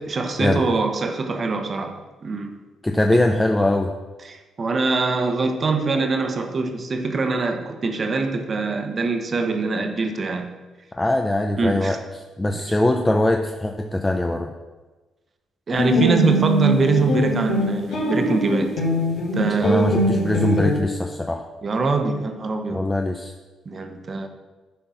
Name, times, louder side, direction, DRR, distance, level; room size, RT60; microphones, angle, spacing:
voice 1, 0.0-2.6 3.1-3.2 4.2-10.5 11.6-12.0 12.5-12.8 15.7-18.8 19.3-19.9 21.6-22.8 23.6-24.3, right 3 dB, 40° right, 6 dB, 1.1 m, -23 dB
voice 2, 2.8-3.9 11.0-12.0 12.4-14.5 19.6-21.4 22.7-23.3, left 1 dB, 15° left, 3 dB, 0.6 m, -21 dB
sound 1, 15.7-20.8, equal, 80° left, 3.2 m, -22 dB
10.5 x 4.5 x 5.6 m, 1.2 s
cardioid pair, 90°, 0 cm